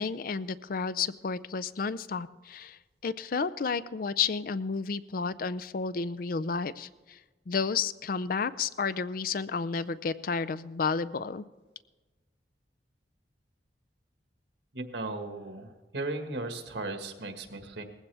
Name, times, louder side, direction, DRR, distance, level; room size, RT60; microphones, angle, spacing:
voice 1, 0.0-7.2 7.5-11.4, left 5 dB, 55° left, 16 dB, 0.4 m, -31 dB
voice 2, 14.7-17.8, right 2 dB, 80° right, 5 dB, 1.6 m, -36 dB
19.5 x 15.5 x 3.4 m, 1.2 s
head